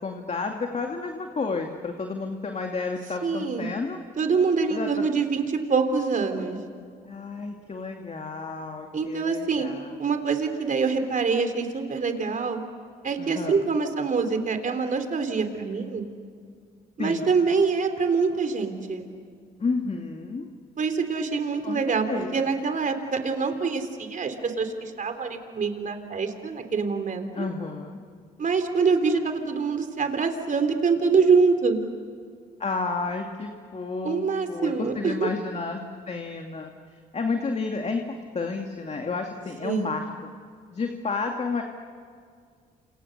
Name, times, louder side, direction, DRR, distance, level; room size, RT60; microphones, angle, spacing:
voice 1, 0.0-4.0 4.7-5.1 7.0-9.9 13.2-13.6 17.0-17.3 19.6-20.5 21.6-22.3 27.3-28.0 32.6-36.7 37.1-40.3 40.7-41.6, left 4 dB, 40° left, 3 dB, 2.5 m, -31 dB
voice 2, 3.2-3.7 4.2-6.6 8.9-9.7 10.0-12.6 13.0-16.1 17.0-19.0 20.8-27.5 28.4-31.8 34.0-35.3 39.6-40.0, right 5 dB, 45° right, 7 dB, 3.7 m, -25 dB
29.0 x 27.5 x 6.8 m, 2.1 s
supercardioid pair, 65°, 18 cm